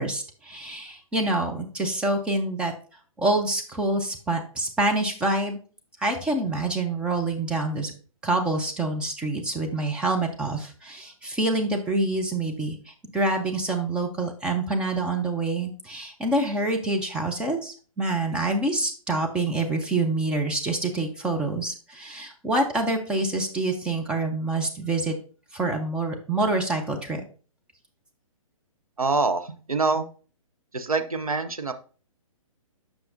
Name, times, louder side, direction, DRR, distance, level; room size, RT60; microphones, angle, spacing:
voice 1, 0.0-2.7 3.2-5.6 6.0-7.9 8.2-25.1 25.5-27.2, right 2 dB, 5° right, 2 dB, 0.5 m, -26 dB
voice 2, 29.0-30.0 30.7-31.7, right 3 dB, 80° right, 8 dB, 0.8 m, -25 dB
7.5 x 5.7 x 2.7 m, 0.39 s
figure-of-eight pair, 125°, 18 cm